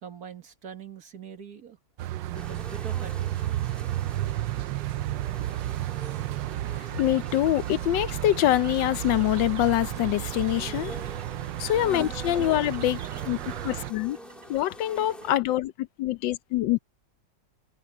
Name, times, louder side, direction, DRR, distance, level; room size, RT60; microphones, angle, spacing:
voice 1, 0.0-1.8 2.3-3.5, right 7 dB, 55° right, 2.0 m, -43 dB
sound 1, 2.0-13.9, right 14 dB, 90° right, 1.3 m, -32 dB
sound 2, 2.3-15.4, equal, ahead, 2.2 m, -46 dB
sound 3, 6.4-15.4, right 3 dB, 25° right, 0.8 m, -50 dB
voice 2, 7.0-11.0 11.6-13.4 13.6-14.2 14.5-16.8, left 14 dB, 90° left, 1.4 m, -25 dB
open air
omnidirectional pair, 1.9 m